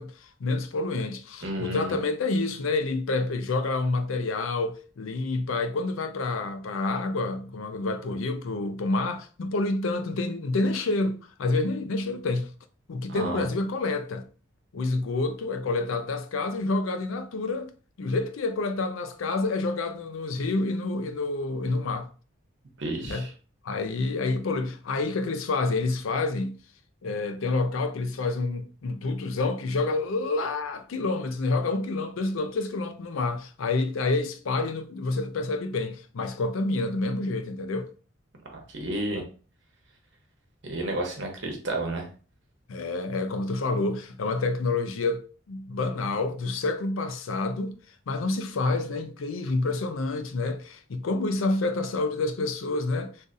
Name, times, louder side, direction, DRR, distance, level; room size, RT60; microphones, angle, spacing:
voice 1, 0.0-12.5 12.9-14.2 14.7-17.7 18.0-22.1 23.1-23.3 23.6-26.6 27.0-37.9 42.7-45.2 45.5-47.8 48.1-53.1, left 3 dB, 85° left, 0.5 m, -28 dB
voice 2, 1.4-2.0 13.1-13.5 22.8-23.3 38.5-39.2 40.6-42.0, right 1 dB, 65° right, 0.9 m, -31 dB
3.8 x 2.6 x 2.5 m
head